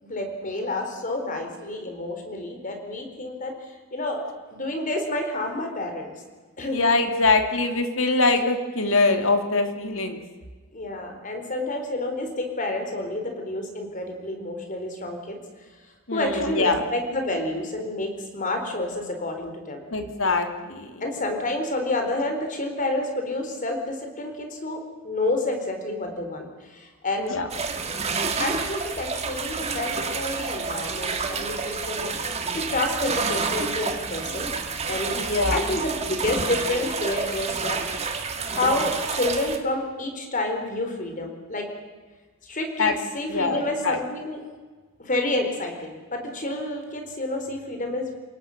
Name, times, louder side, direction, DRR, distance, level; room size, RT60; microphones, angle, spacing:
voice 1, 0.0-3.5 3.9-4.2 4.5-6.1 6.6-6.8 10.7-15.4 16.1-19.8 21.0-27.4 28.4-32.1 32.5-34.6 34.9-35.2 35.5-41.6 42.4-44.4 45.0-48.1, left 2 dB, 40° left, 4 dB, 4.1 m, -29 dB
voice 2, 6.7-10.2 16.1-16.8 19.9-21.0 27.2-27.5 35.1-35.6 42.8-42.9 43.3-44.0, left 3 dB, 65° left, 6 dB, 2.5 m, -23 dB
sound 1, 27.5-39.6, right 4 dB, 30° right, 1.9 m, -29 dB
28.5 x 18.0 x 6.6 m, 1.4 s
head